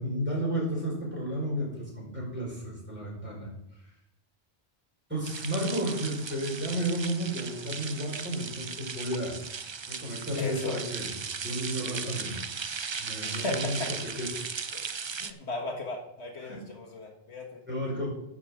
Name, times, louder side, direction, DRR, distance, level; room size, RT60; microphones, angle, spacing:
voice 1, 0.0-3.5 5.1-9.4 9.7-12.4 13.0-14.8 16.4-16.6 17.7-18.1, right 1 dB, 10° right, -3 dB, 4.8 m, -33 dB
sound 1, 5.2-15.3, right 5 dB, 40° right, 0.4 m, -37 dB
voice 2, 10.4-10.8 13.2-13.5 14.7-14.8 15.2-17.6, left 3 dB, 80° left, 2 dB, 1.8 m, -36 dB
11.0 x 5.7 x 7.1 m, 0.82 s
omnidirectional pair, 1.1 m